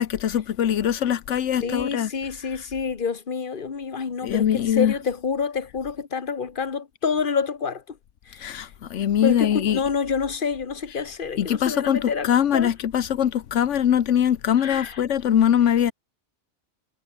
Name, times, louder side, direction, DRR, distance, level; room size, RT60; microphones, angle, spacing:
voice 1, 0.0-2.1 2.5-2.6 4.2-4.9 8.4-9.8 11.4-15.9, left 9 dB, 85° left, 1.2 m, -22 dB
voice 2, 1.6-8.0 8.3-8.6 9.2-12.7 14.6-15.0, left 5 dB, 45° left, 1.6 m, -28 dB
omnidirectional pair, 1.2 m